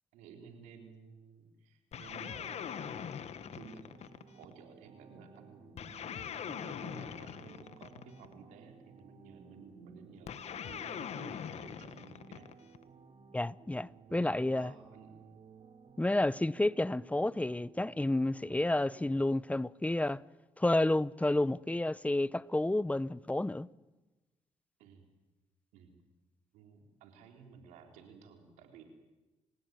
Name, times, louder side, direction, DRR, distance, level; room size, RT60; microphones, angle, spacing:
voice 1, 0.1-3.1 3.6-3.9 4.2-5.8 6.4-12.5 14.1-15.3 24.8-25.0 25.7-26.0 26.5-28.8, right 5 dB, 90° right, 3.8 m, -54 dB
sound 1, 1.9-4.5 5.8-8.3 10.3-12.8, left 8 dB, 65° left, 1.4 m, -42 dB
sound 2, 2.1-19.3, right 6 dB, 55° right, 3.0 m, -58 dB
voice 2, 13.3-14.7 16.0-20.2 20.6-23.7, left 1 dB, 10° left, 0.7 m, -30 dB
29.5 x 16.5 x 9.4 m
supercardioid pair, 60°, 12 cm